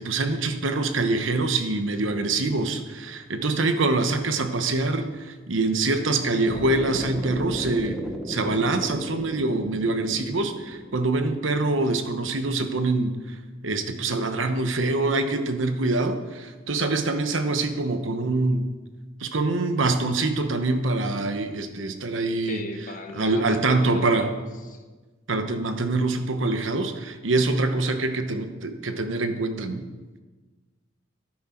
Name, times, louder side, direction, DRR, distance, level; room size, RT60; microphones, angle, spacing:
voice 1, 0.0-8.0 8.3-13.4 13.6-18.7 19.2-22.6 23.1-24.3 25.3-29.8, right 2 dB, 75° right, 8 dB, 1.0 m, -25 dB
sound 1, 6.5-12.6, equal, ahead, 1.1 m, -36 dB
voice 2, 22.5-24.8, left 3 dB, 45° left, 5 dB, 1.2 m, -38 dB
11.5 x 10.0 x 4.5 m, 1.3 s
head